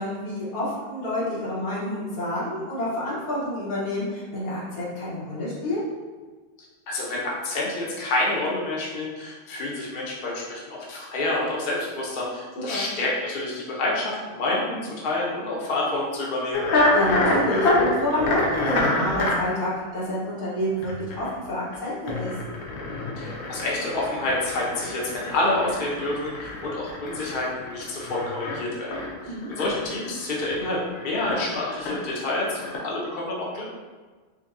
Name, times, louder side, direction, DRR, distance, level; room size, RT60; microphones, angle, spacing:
voice 1, 0.0-5.8 12.7-12.9 16.9-22.3 29.2-29.5, left 1 dB, 90° left, -8 dB, 1.7 m, -28 dB
voice 2, 6.9-16.6 23.2-33.6, left 2 dB, 45° left, -4 dB, 0.8 m, -28 dB
Giant Fan Scraped With Contact Mic, 16.5-19.4 20.7-21.3 21.7-21.8 22.1-30.7 31.0-32.1 32.5-32.8, left 2 dB, 70° left, 1.1 m, -27 dB
5.1 x 2.2 x 2.6 m, 1.4 s
omnidirectional pair, 1.5 m